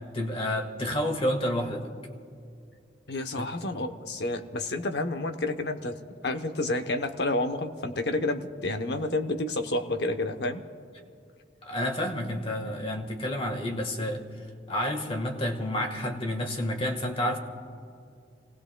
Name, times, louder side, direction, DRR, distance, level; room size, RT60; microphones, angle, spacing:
voice 1, 0.1-1.9 3.4-3.5 11.6-14.2 14.7-17.4, left 1 dB, 30° left, 4 dB, 1.5 m, -29 dB
voice 2, 3.1-6.0 6.2-10.6, left 2 dB, 65° left, 7 dB, 0.9 m, -30 dB
29.5 x 18.5 x 2.3 m, 2.4 s
head